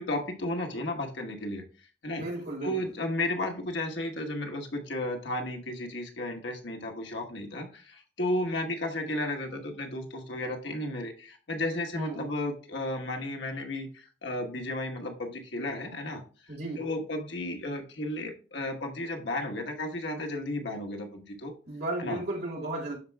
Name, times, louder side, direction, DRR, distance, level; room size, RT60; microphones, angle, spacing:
voice 1, 0.0-2.2 2.6-21.5 22.0-22.2, left 1 dB, 75° left, 2 dB, 1.3 m, -34 dB
voice 2, 2.1-2.7 11.9-12.3 16.5-16.8 21.7-22.9, right 2 dB, 60° right, -3 dB, 3.5 m, -34 dB
12.0 x 4.4 x 2.3 m, 0.37 s
head